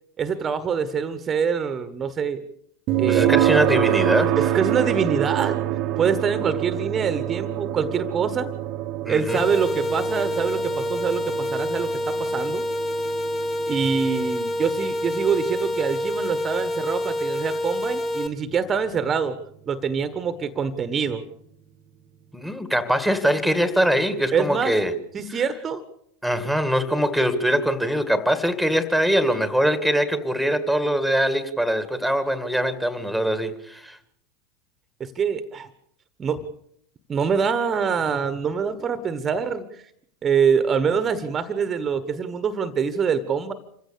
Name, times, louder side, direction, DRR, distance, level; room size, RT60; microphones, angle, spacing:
voice 1, 0.2-2.4 3.0-3.4 4.4-5.6 6.0-8.5 9.1-12.6 13.7-19.4 19.7-21.2 24.3-24.7 25.1-25.8 35.0-35.7 36.2-36.5 37.1-39.8 40.2-43.5, right 6 dB, 25° right, 1.4 m, -25 dB
sound 1, 2.9-17.8, right 12 dB, 45° right, 1.1 m, -27 dB
voice 2, 3.1-4.3 9.0-9.4 22.3-24.9 25.3-25.4 26.2-34.0, equal, ahead, 2.0 m, -22 dB
sound 2, 9.3-18.3, left 1 dB, 25° left, 2.2 m, -27 dB
27.0 x 16.0 x 6.9 m
figure-of-eight pair, 85°, 0 cm